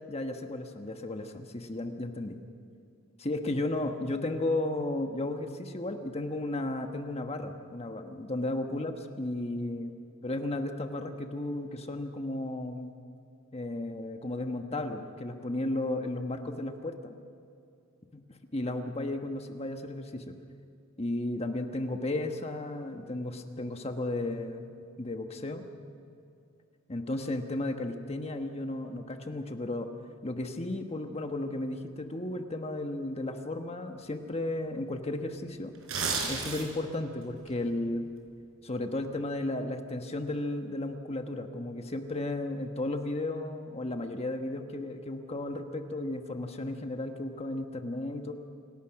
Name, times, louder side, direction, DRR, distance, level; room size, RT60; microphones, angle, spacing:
voice 1, 0.1-2.4 3.2-9.9 10.2-12.9 13.5-17.1 18.1-18.2 18.5-20.3 21.0-24.7 25.0-25.6 26.9-29.9 30.2-35.7 36.3-38.1 38.6-48.3, left 2 dB, 30° left, 5 dB, 1.3 m, -34 dB
sound 1, 35.7-36.9 37.3-37.5, right 4 dB, 65° right, 5.1 m, -31 dB
27.5 x 18.0 x 6.0 m, 2.5 s
head